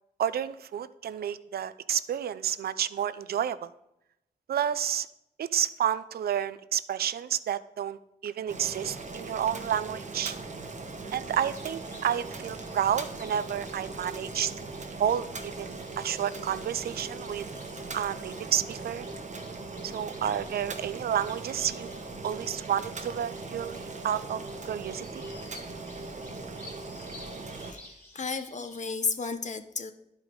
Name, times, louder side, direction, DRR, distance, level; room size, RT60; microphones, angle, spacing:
voice 1, 0.2-3.7 4.5-5.1 5.4-8.0 8.2-10.4 11.1-17.5 17.9-19.1 19.8-21.9 22.2-25.2, right 9 dB, 70° right, 16 dB, 0.4 m, -30 dB
Boiling, 8.5-27.7, right 3 dB, 45° right, 1.0 m, -40 dB
sound 1, 11.2-28.9, left 1 dB, 15° left, 2.4 m, -53 dB
voice 2, 27.5-29.9, left 4 dB, 45° left, 9 dB, 0.8 m, -33 dB
11.0 x 4.8 x 3.8 m, 0.82 s
cardioid pair, 55°, 16 cm